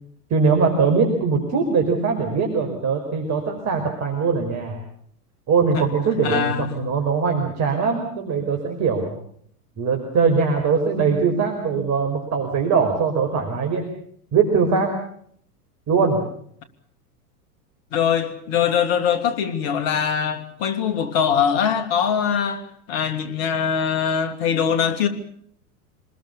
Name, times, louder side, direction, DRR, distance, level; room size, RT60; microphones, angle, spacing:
voice 1, 0.3-4.8 5.5-9.2 9.8-13.8 14.3-14.9 15.9-16.2, right 5 dB, 35° right, 5.0 m, -21 dB
voice 2, 6.2-6.9 17.9-25.1, left 7 dB, 50° left, 3.1 m, -22 dB
27.0 x 21.0 x 7.0 m
hypercardioid pair, 95°, 47 cm